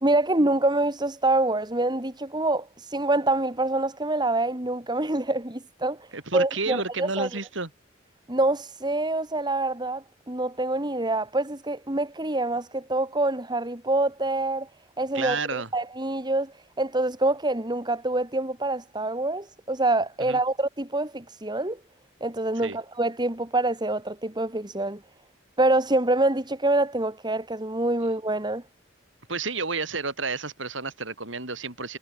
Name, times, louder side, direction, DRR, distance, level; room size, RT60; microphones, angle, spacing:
voice 1, 0.0-7.3 8.3-14.7 15.0-21.8 22.2-25.0 25.6-28.6, right 2 dB, 20° right, 2.6 m, -26 dB
voice 2, 6.1-7.7 15.1-15.7 20.2-20.4 22.6-22.8 29.3-32.0, right 4 dB, 65° right, 4.4 m, -31 dB
head